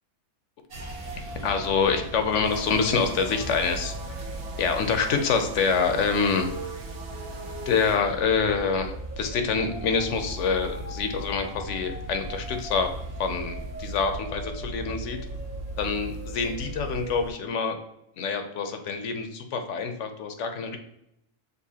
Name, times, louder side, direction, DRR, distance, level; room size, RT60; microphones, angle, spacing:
sound 1, 0.7-17.3, right 2 dB, 80° right, 1.5 m, -37 dB
voice 1, 1.4-3.9 4.6-6.5 7.7-12.9 13.2-15.2 15.8-17.8 18.2-20.8, left 5 dB, 65° left, 6 dB, 0.8 m, -26 dB
sound 2, 2.4-8.0, right 3 dB, 55° right, 0.7 m, -43 dB
6.7 x 2.5 x 2.8 m, 0.80 s
omnidirectional pair, 1.6 m